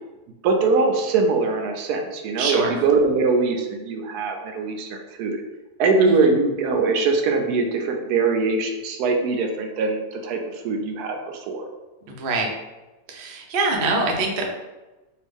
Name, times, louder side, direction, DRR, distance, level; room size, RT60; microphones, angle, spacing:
voice 1, 0.4-5.4 5.8-10.4 10.6-11.6, right 4 dB, 80° right, 3 dB, 1.1 m, -22 dB
voice 2, 2.4-2.7 6.0-6.3 12.1-12.5 13.1-14.5, right 3 dB, 60° right, 0 dB, 0.5 m, -24 dB
3.4 x 2.3 x 3.4 m, 1.1 s
omnidirectional pair, 1.7 m